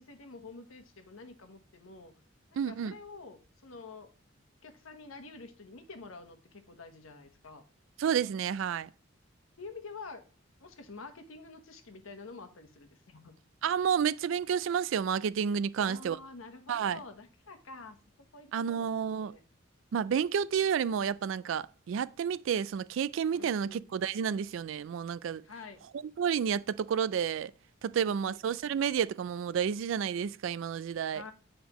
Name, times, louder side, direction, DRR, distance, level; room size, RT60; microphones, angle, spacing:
voice 1, 0.0-2.1 2.5-4.1 4.6-7.6 9.6-10.3 10.6-13.4 15.8-18.0 18.3-19.4 23.3-23.8 25.4-25.9 27.9-28.4 31.1-31.3, left 4 dB, 90° left, 1.1 m, -48 dB
voice 2, 2.6-2.9 8.0-8.9 13.6-16.2 16.7-17.0 18.5-19.3 19.9-25.4 26.2-27.5 27.8-31.2, right 7 dB, 70° right, 0.3 m, -30 dB
8.1 x 5.1 x 3.0 m
head